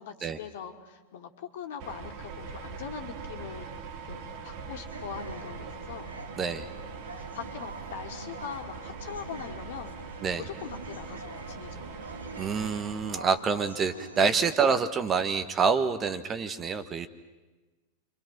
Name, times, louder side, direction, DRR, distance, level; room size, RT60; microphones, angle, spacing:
voice 1, 0.0-6.1 7.1-10.0 10.4-12.1, left 7 dB, 55° left, 5 dB, 2.5 m, -42 dB
sound 1, 1.8-13.4, right 5 dB, 45° right, 2.5 m, -42 dB
sound 2, 4.9-14.6, right 3 dB, 80° right, 1.6 m, -45 dB
voice 2, 6.4-6.7 10.2-10.5 12.4-17.1, right 5 dB, 25° right, 11 dB, 1.3 m, -27 dB
30.0 x 25.0 x 6.0 m, 1.2 s
figure-of-eight pair, 90°, 0 cm